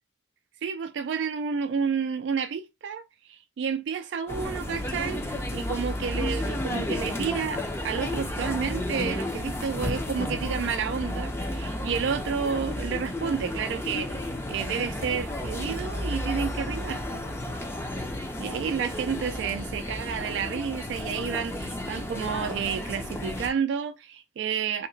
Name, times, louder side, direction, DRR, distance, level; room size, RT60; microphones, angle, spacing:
voice 1, 0.6-17.2 18.4-24.9, right 6 dB, 70° right, 0.3 m, -30 dB
sound 1, 4.3-23.5, left 1 dB, 15° left, 0.5 m, -32 dB
2.9 x 2.8 x 2.6 m
head